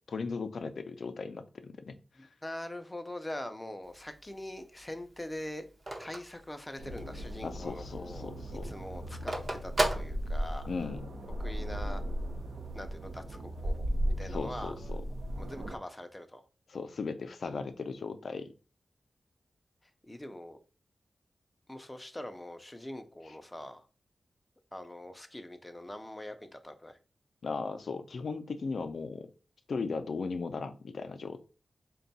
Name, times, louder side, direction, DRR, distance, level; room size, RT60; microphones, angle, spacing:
voice 1, 0.1-2.0 7.4-8.7 10.7-11.1 14.3-15.0 16.7-18.5 27.4-29.3 29.7-31.4, left 4 dB, 70° left, 9 dB, 0.4 m, -37 dB
voice 2, 2.2-5.6 6.0-8.3 8.6-10.7 11.4-12.0 12.7-14.7 15.4-16.5 20.0-20.6 21.7-23.8 24.7-27.0, left 1 dB, 15° left, 8 dB, 0.5 m, -43 dB
Telephone, 3.8-7.2 7.6-7.7 8.0-10.9, right 1 dB, 30° right, 0.6 m, -35 dB
sound 1, 6.8-15.8, equal, 85° right, 0.7 m, -36 dB
3.5 x 2.3 x 4.0 m, 0.35 s
wide cardioid pair, 125°, 0 cm